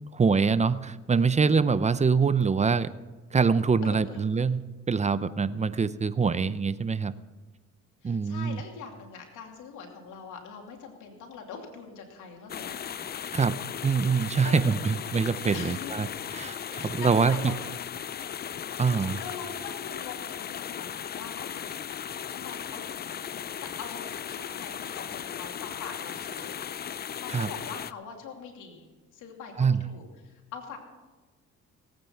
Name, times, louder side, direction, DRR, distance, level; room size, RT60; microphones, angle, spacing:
voice 1, 0.1-2.9 3.3-7.1 8.0-8.6 13.3-13.6 13.8-16.1 16.3-17.4 18.8-19.2 27.3-27.5 29.6-29.9, right 5 dB, 25° right, 15 dB, 0.6 m, -24 dB
voice 2, 3.8-4.3 8.0-12.8 14.4-14.7 15.5-16.0 16.6-17.6 19.2-23.2 23.6-26.6 27.2-28.9 29.1-30.8, left 6 dB, 85° left, 2 dB, 2.8 m, -43 dB
sound 1, 12.5-27.9, left 9 dB, 35° left, 0.4 m, -37 dB
18.5 x 9.0 x 5.8 m, 1.2 s
cardioid pair, 90°, 30 cm